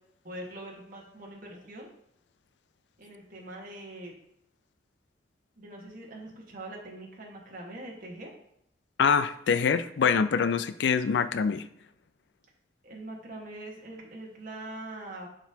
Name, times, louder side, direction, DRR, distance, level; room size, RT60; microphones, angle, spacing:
voice 1, 0.2-1.9 3.0-4.1 5.6-8.3 12.8-15.3, right 1 dB, 50° right, -1 dB, 1.5 m, -43 dB
voice 2, 9.0-11.6, left 6 dB, 80° left, 14 dB, 0.4 m, -25 dB
11.0 x 4.0 x 2.8 m, 0.74 s
head